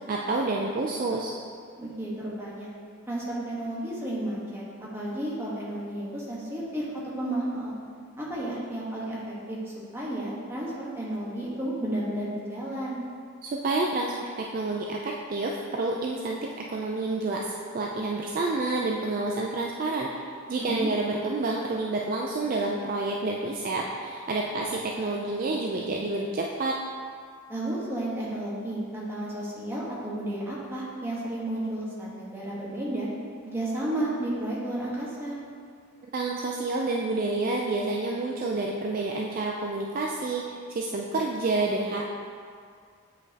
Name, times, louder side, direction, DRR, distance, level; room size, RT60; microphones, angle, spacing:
voice 1, 0.1-1.4 13.4-26.8 36.1-42.0, right 2 dB, 40° right, -1 dB, 0.3 m, -29 dB
voice 2, 1.8-2.7 3.1-4.6 4.9-6.9 7.2-7.7 8.2-9.6 9.9-13.0 20.6-20.9 27.5-33.1 33.4-35.4, right 1 dB, 10° right, -6 dB, 1.1 m, -32 dB
8.4 x 5.1 x 2.8 m, 2.1 s
head